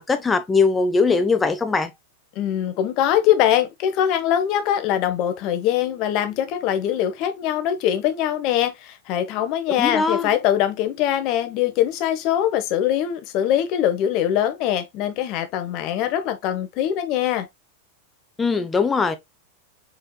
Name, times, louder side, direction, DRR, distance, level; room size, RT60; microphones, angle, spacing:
voice 1, 0.0-1.9 9.8-10.3 18.4-19.2, left 4 dB, 15° left, 0.9 m, -20 dB
voice 2, 2.3-17.5, left 11 dB, 40° left, 0.9 m, -22 dB
4.5 x 4.4 x 2.2 m
figure-of-eight pair, 90°, 0 cm